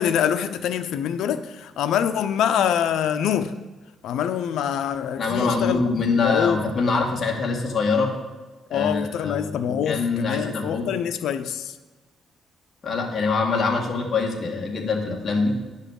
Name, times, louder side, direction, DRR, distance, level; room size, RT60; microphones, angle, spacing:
voice 1, 0.0-3.5 4.0-6.6 8.7-11.8, left 9 dB, 85° left, 9 dB, 0.7 m, -25 dB
voice 2, 5.2-8.1 8.7-10.9 12.8-15.6, left 4 dB, 40° left, 0 dB, 1.8 m, -24 dB
10.0 x 5.6 x 6.6 m, 1.2 s
cardioid pair, 125°, 0 cm